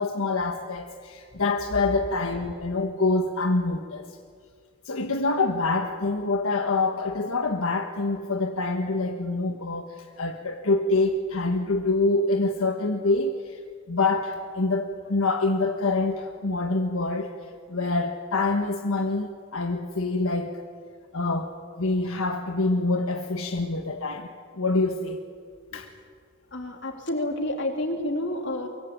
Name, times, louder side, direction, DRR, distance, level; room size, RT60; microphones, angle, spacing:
voice 1, 0.0-4.1 4.8-13.6 13.9-17.3 17.7-20.6 21.1-21.5 21.8-24.3 24.5-25.2 25.7-25.9, left 3 dB, 80° left, 4 dB, 1.5 m, -26 dB
voice 2, 26.5-28.7, left 1 dB, 55° left, 3 dB, 3.5 m, -29 dB
23.5 x 23.0 x 8.8 m, 2.1 s
head